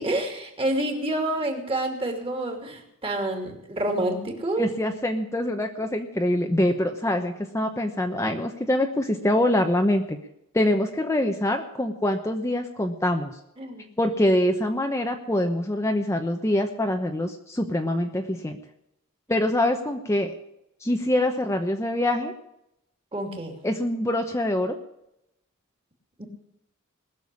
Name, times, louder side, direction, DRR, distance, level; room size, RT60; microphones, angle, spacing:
voice 1, 0.0-4.7 13.6-13.9 23.1-23.6 26.2-26.3, right 1 dB, 25° right, 4 dB, 2.8 m, -28 dB
voice 2, 4.6-10.2 10.5-13.4 14.0-18.6 19.3-20.3 20.8-22.3 23.6-24.8, left 1 dB, 15° left, 4 dB, 0.9 m, -24 dB
20.0 x 7.0 x 8.4 m, 0.83 s
head